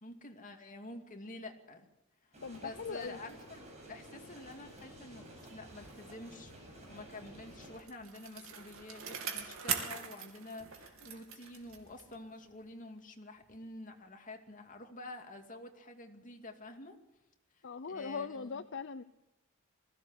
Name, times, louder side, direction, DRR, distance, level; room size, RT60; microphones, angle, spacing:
voice 1, 0.0-1.9 2.6-3.6 3.9-6.5 6.9-17.0 17.9-18.7, left 2 dB, 40° left, 4 dB, 2.5 m, -48 dB
sound 1, 2.3-7.8, right 1 dB, 35° right, 7.2 m, -52 dB
voice 2, 2.4-3.2 17.6-19.0, left 5 dB, 60° left, 12 dB, 0.7 m, -40 dB
Bicycle, 7.4-12.3 12.6-12.7, right 7 dB, 70° right, 2.9 m, -41 dB
20.5 x 16.0 x 8.1 m, 0.94 s
head